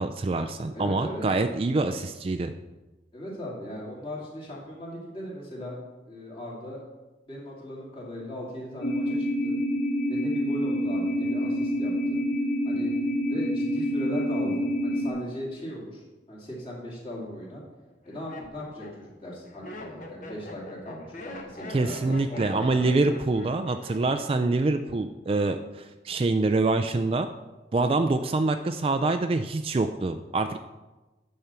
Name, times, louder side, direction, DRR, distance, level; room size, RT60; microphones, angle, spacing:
voice 1, 0.0-2.5 21.7-27.3 27.7-30.6, right 3 dB, 30° right, 8 dB, 0.3 m, -25 dB
voice 2, 0.7-1.2 3.1-5.8 6.1-6.8 7.3-9.5 10.1-12.2 12.6-12.9 13.3-16.0 16.3-17.6 18.0-23.0, equal, 30° left, -5 dB, 2.5 m, -38 dB
sound 1, 8.8-15.1, equal, 75° left, 1.5 m, -27 dB
Laughter, 17.2-17.3 17.9-24.5 24.8-25.3, left 2 dB, 45° left, 1.1 m, -42 dB
9.4 x 4.3 x 6.9 m, 1.1 s
head